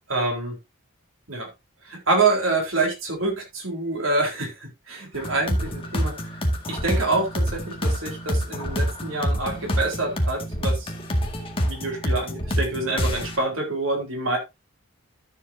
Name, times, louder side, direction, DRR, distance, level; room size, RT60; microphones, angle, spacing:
voice 1, 0.1-0.6 1.3-1.5 1.8-6.2 6.7-10.9 11.6-14.4, right 3 dB, 85° right, 1 dB, 4.0 m, -26 dB
sound 1, 5.1-13.4, equal, 25° left, 2.0 m, -26 dB
13.0 x 7.5 x 2.7 m, 0.22 s
head